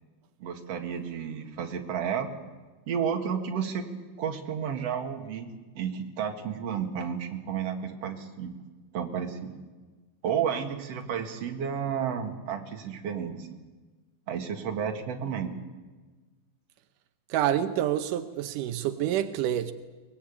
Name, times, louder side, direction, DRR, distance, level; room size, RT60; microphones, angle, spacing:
voice 1, 0.4-2.3 2.9-3.9 4.2-8.5 8.9-9.5 10.2-13.5 14.3-15.5, right 7 dB, 45° right, 4 dB, 2.4 m, -32 dB
voice 2, 17.3-19.7, right 11 dB, 85° right, 9 dB, 1.8 m, -27 dB
23.5 x 21.0 x 8.7 m, 1.3 s
omnidirectional pair, 4.9 m